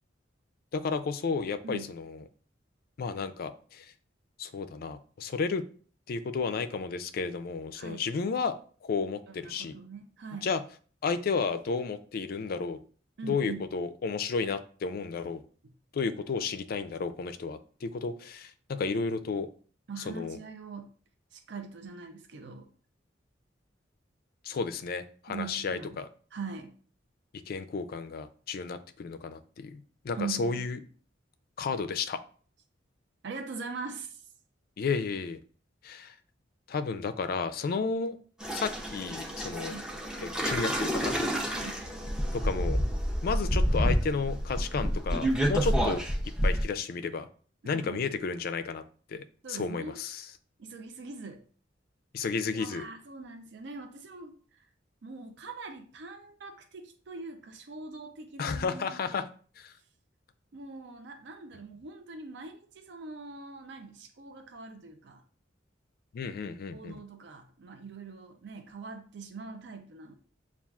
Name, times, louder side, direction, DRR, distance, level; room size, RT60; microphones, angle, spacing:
voice 1, 0.7-2.2 3.0-3.9 4.4-5.6 6.1-8.6 8.8-9.8 10.4-10.6 11.0-12.8 13.2-15.4 15.9-19.5 20.1-20.4 24.4-26.1 27.5-30.8 31.6-32.2 34.8-35.4 35.8-36.1 36.7-38.2 38.5-39.8 40.2-41.1 42.3-42.8 43.2-46.0 46.4-47.3 47.6-48.8 49.1-50.2 52.1-52.9 58.4-59.3 59.6-59.7 66.1-67.0, left 5 dB, 50° left, 11 dB, 0.3 m, -32 dB
voice 2, 9.3-10.5 13.2-13.7 15.6-15.7 19.9-20.9 21.3-22.7 25.3-26.0 26.3-26.8 30.2-30.7 33.2-34.3 39.7-39.9 41.5-41.9 47.6-48.1 49.4-50.0 50.6-51.4 52.5-54.6 55.0-59.3 60.5-65.2 66.7-70.1, right 4 dB, 65° right, 5 dB, 0.5 m, -42 dB
sound 1, 38.4-46.6, equal, 5° right, 0.5 m, -29 dB
6.9 x 2.4 x 2.3 m, 0.43 s
head